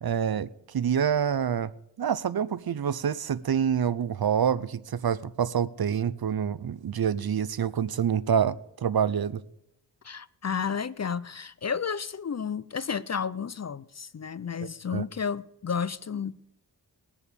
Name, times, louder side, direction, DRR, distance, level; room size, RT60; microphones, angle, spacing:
voice 1, 0.0-1.7 2.0-9.4 14.9-15.0, right 8 dB, 55° right, 0.6 m, -27 dB
voice 2, 10.0-16.5, left 6 dB, 40° left, 0.5 m, -32 dB
20.0 x 7.2 x 6.8 m
wide cardioid pair, 85°, 44 cm